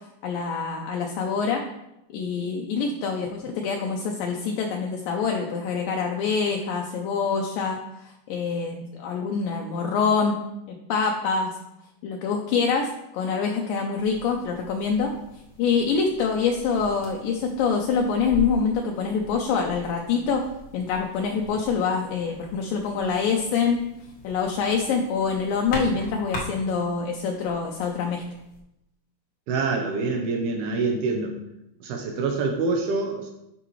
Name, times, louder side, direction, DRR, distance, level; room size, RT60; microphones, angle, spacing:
voice 1, 0.2-1.6 2.1-10.4 10.7-11.6 12.0-15.1 15.6-20.5 20.7-23.8 24.2-28.2, left 5 dB, 80° left, 1 dB, 2.0 m, -25 dB
sound 1, 13.9-28.6, left 3 dB, 60° left, 1.2 m, -41 dB
voice 2, 29.5-31.4 31.8-33.3, right 3 dB, 80° right, 2 dB, 2.7 m, -26 dB
10.5 x 5.8 x 3.1 m, 0.87 s
omnidirectional pair, 4.6 m